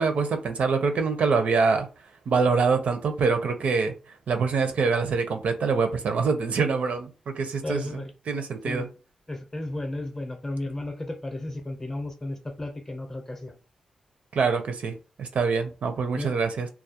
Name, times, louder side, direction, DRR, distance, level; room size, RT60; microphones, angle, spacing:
voice 1, 0.0-1.9 2.3-3.9 4.3-7.9 8.3-8.9 14.3-16.7, right 4 dB, 70° right, 0.5 m, -25 dB
voice 2, 7.6-8.1 8.6-8.9 9.3-13.6 16.2-16.3, left 1 dB, 20° left, 0.6 m, -34 dB
2.3 x 2.0 x 2.7 m
wide cardioid pair, 110°, 2 cm